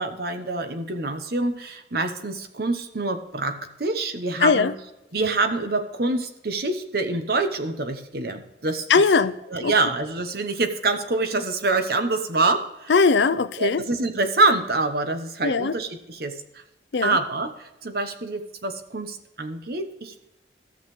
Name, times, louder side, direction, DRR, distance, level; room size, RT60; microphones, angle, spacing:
voice 1, 0.0-4.7 5.1-8.9 9.5-12.9 13.6-16.6 17.0-20.2, right 3 dB, 60° right, 1.0 m, -26 dB
voice 2, 4.4-4.7 8.9-9.4 9.6-9.7 12.9-13.8 15.4-15.7 16.9-17.2, left 4 dB, 80° left, 0.5 m, -19 dB
14.5 x 6.6 x 3.2 m
head